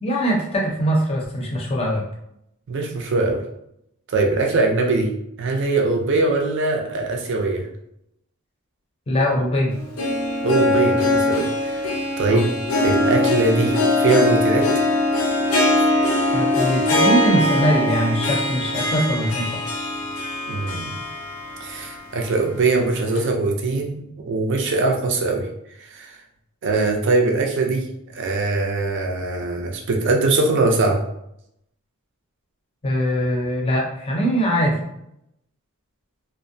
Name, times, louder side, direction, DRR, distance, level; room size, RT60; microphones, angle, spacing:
voice 1, 0.0-2.0 9.1-9.7 12.3-12.4 16.3-19.6 32.8-34.8, equal, 30° left, -2 dB, 0.6 m, -22 dB
voice 2, 2.7-3.4 4.1-5.1 5.4-7.7 10.4-11.9 12.2-12.5 12.8-14.7 20.5-20.9 21.6-25.5 25.9-26.2 26.6-27.8 28.1-31.0, right 3 dB, 55° right, 2 dB, 0.5 m, -21 dB
Harp, 9.7-21.9 22.2-22.3 23.2-23.3, left 1 dB, 85° left, 0.5 m, -21 dB
2.5 x 2.0 x 2.6 m, 0.78 s
head